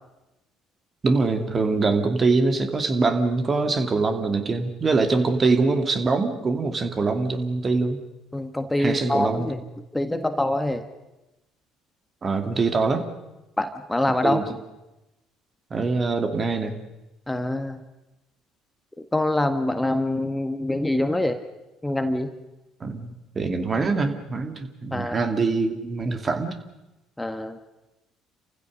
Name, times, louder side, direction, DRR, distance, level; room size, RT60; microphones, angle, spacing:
voice 1, 1.0-8.0 8.8-9.6 12.2-13.1 14.2-14.4 15.7-16.8 22.8-26.6, right 3 dB, 35° right, 6 dB, 2.5 m, -23 dB
voice 2, 8.3-9.6 9.9-10.8 13.6-14.4 17.3-17.8 19.1-21.4 21.8-22.3 24.9-25.2 27.2-27.6, left 1 dB, 10° left, 8 dB, 1.7 m, -25 dB
28.5 x 15.5 x 6.5 m, 0.99 s
hypercardioid pair, 55°, 0 cm